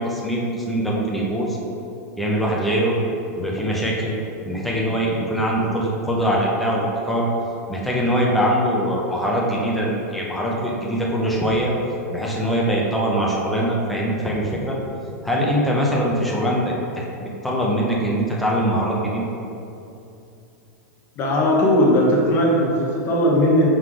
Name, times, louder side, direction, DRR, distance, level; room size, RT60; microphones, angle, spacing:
voice 1, 0.0-1.6 2.2-2.9 3.4-4.1 4.5-7.3 7.7-11.7 12.1-14.8 15.2-19.2, equal, ahead, -4 dB, 0.7 m, -22 dB
voice 2, 21.2-23.7, left 1 dB, 25° left, -3 dB, 1.1 m, -18 dB
5.6 x 3.9 x 4.7 m, 2.7 s
supercardioid pair, 160°, 9 cm